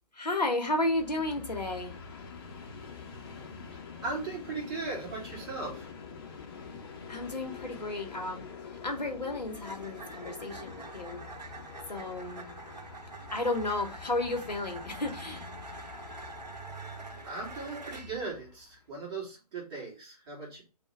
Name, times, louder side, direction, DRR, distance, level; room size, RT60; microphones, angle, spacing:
voice 1, 0.1-2.0 7.1-11.2 11.9-12.6 13.3-15.4, left 2 dB, 85° left, 2 dB, 0.8 m, -33 dB
Train, 0.7-18.8, left 5 dB, 35° left, 0.6 m, -46 dB
voice 2, 3.7-5.9 17.2-20.6, right 3 dB, 35° right, -3 dB, 1.7 m, -38 dB
sound 1, 8.8-18.3, right 3 dB, 85° right, 0.6 m, -46 dB
3.3 x 2.1 x 3.9 m, 0.32 s
figure-of-eight pair, 135°, 21 cm